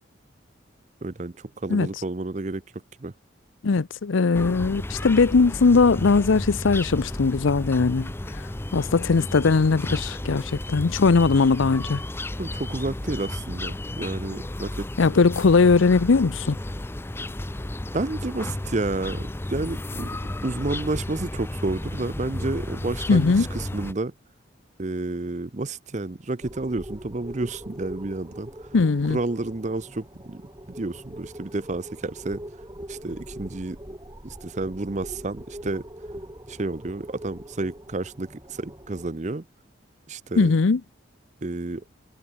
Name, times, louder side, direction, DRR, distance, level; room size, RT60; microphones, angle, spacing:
voice 1, 1.0-2.6 3.0-3.1 12.4-14.9 17.9-20.1 20.4-24.1 24.8-28.5 29.1-30.4 30.7-32.4 32.9-33.8 34.2-35.9 36.5-39.4 40.1-40.5 41.4-41.8, right 2 dB, 40° right, 0.7 m, -30 dB
voice 2, 3.6-8.4 8.7-12.0 15.0-16.6 23.1-23.5 28.7-29.2 40.4-40.8, left 4 dB, 85° left, 0.6 m, -20 dB
sound 1, 4.3-23.9, left 1 dB, 10° left, 0.5 m, -33 dB
sound 2, 26.4-39.1, equal, 20° right, 3.0 m, -42 dB
sound 3, 27.5-27.6 27.8-27.9 28.1-28.4 28.8-29.0 29.4-29.7 30.1-30.2 30.5-30.6 30.8-31.0 31.4-31.7 32.1-32.3, equal, 45° left, 3.5 m, -54 dB
head